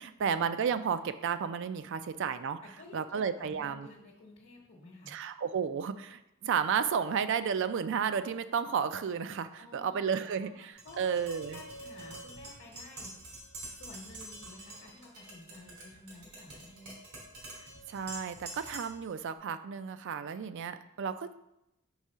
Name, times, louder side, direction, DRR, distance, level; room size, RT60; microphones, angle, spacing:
voice 1, 0.0-2.6 2.9-3.9 5.1-11.6 17.9-21.3, right 7 dB, 55° right, 12 dB, 0.3 m, -32 dB
voice 2, 2.6-5.2 9.6-17.0, left 2 dB, 55° left, 0 dB, 1.0 m, -52 dB
Tap, 10.8-19.0, right 2 dB, 90° right, 2.2 m, -47 dB
4.7 x 3.7 x 5.4 m, 0.86 s
head